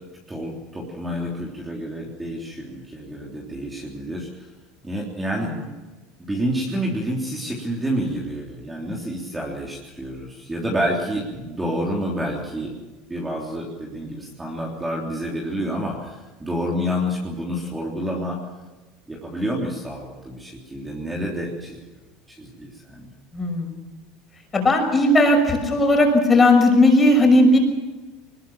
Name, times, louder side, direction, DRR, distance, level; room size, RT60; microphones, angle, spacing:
voice 1, 0.3-4.3 4.8-5.5 6.2-12.7 13.1-18.4 19.1-21.8 22.3-23.1, equal, 10° right, -2 dB, 3.4 m, -28 dB
voice 2, 23.3-23.7 24.5-27.6, left 1 dB, 20° left, 3 dB, 6.0 m, -16 dB
21.0 x 21.0 x 7.2 m, 1.2 s
supercardioid pair, 135°, 0 cm